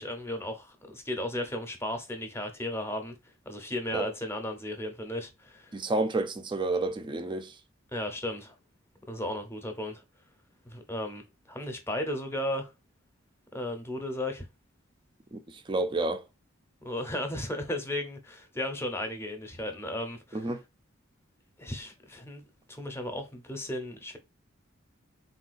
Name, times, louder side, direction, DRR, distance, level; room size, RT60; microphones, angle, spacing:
voice 1, 0.0-3.1 3.5-5.8 7.9-8.6 9.1-10.0 10.7-12.7 13.5-14.5 16.8-20.5 21.6-24.2, left 1 dB, 10° left, 0.7 m, -35 dB
voice 2, 5.7-7.5 15.3-16.2 20.3-20.6, right 2 dB, 25° right, 0.4 m, -30 dB
3.7 x 2.3 x 2.4 m
head